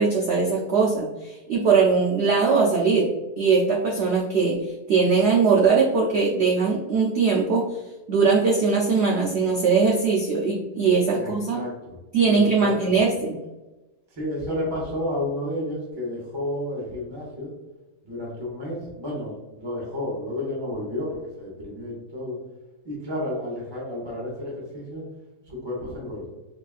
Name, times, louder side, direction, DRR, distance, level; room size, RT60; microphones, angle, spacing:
voice 1, 0.0-3.1 3.4-7.8 8.1-11.6 12.1-13.4, right 5 dB, 80° right, -1 dB, 0.5 m, -21 dB
voice 2, 11.1-12.0 12.3-13.0 14.1-17.5 18.0-22.4 22.8-25.1 25.5-26.3, left 1 dB, 25° right, -4 dB, 0.7 m, -31 dB
4.8 x 2.3 x 2.3 m, 1.1 s
omnidirectional pair, 1.7 m